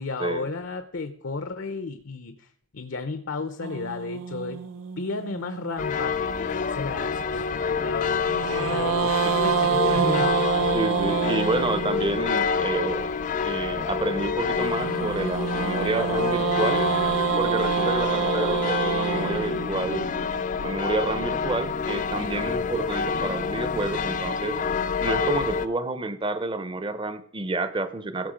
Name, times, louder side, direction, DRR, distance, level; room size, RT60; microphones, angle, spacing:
voice 1, 0.0-4.6 5.0-10.5, left 3 dB, 65° left, 9 dB, 0.7 m, -34 dB
sound 1, 3.6-6.0 8.3-12.4 14.6-20.8, right 6 dB, 80° right, 0.7 m, -27 dB
sound 2, 5.8-25.7, left 5 dB, 40° left, 0.4 m, -28 dB
voice 2, 8.4-8.8 9.2-9.3 9.8-10.4 10.7-13.1 13.4-16.8 17.4-20.1 20.6-24.6 25.0-28.3, right 2 dB, 25° right, 12 dB, 0.7 m, -29 dB
15.5 x 6.6 x 5.1 m, 0.68 s
head